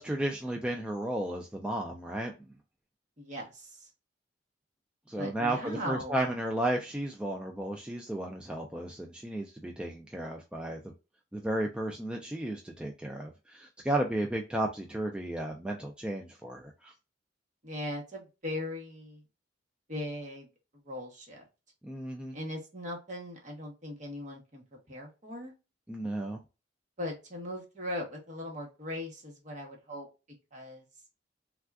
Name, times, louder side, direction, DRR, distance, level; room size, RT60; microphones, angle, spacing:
voice 1, 0.0-2.3 5.1-10.9 11.3-16.9 21.8-22.3 25.9-26.4, right 1 dB, 5° right, 0.3 m, -33 dB
voice 2, 3.2-3.9 5.2-6.3 17.6-19.2 19.9-20.5 20.8-21.4 22.3-25.5 27.0-30.1 30.5-30.9, left 1 dB, 40° right, 1.1 m, -39 dB
3.5 x 2.3 x 2.3 m
head